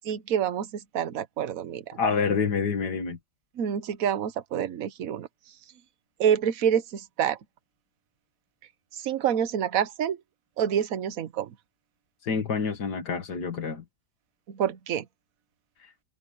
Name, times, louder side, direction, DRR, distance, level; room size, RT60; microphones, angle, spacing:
voice 1, 0.1-2.0 3.6-5.3 6.2-7.4 8.9-10.2 10.6-11.5 14.5-15.1, right 9 dB, 60° right, 1.3 m, -27 dB
voice 2, 2.0-3.2 12.2-13.8, left 5 dB, 90° left, 2.3 m, -27 dB
omnidirectional pair, 1.7 m